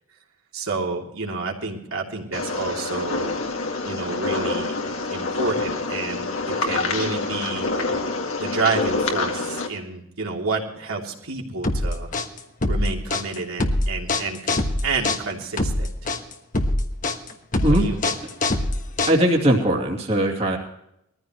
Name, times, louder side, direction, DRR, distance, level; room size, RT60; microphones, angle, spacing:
voice 1, 0.5-3.3 3.8-4.8 5.1-6.3 6.6-7.7 8.4-12.1 12.6-15.9 17.6-18.2, right 4 dB, 80° right, -1 dB, 3.2 m, -29 dB
sound 1, 2.3-9.7, left 3 dB, 65° left, 2.0 m, -26 dB
sound 2, 11.6-19.5, left 2 dB, 40° left, 1.3 m, -23 dB
voice 2, 19.1-20.6, right 1 dB, 30° right, -1 dB, 2.5 m, -19 dB
22.0 x 14.5 x 3.1 m, 0.80 s
head